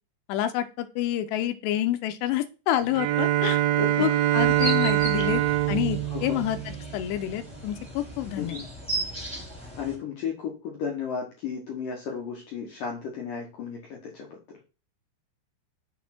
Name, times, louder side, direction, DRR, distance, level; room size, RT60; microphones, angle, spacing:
voice 1, 0.3-3.6 4.0-8.6, left 12 dB, 85° left, 10 dB, 2.6 m, -28 dB
Bowed string instrument, 2.9-7.4, right 13 dB, 85° right, 3.1 m, -24 dB
sound 1, 4.4-10.0, right 1 dB, ahead, 1.7 m, -36 dB
voice 2, 6.1-6.4 8.4-8.6 9.8-14.4, left 6 dB, 65° left, -2 dB, 2.2 m, -34 dB
6.7 x 4.3 x 5.8 m, 0.33 s
omnidirectional pair, 5.4 m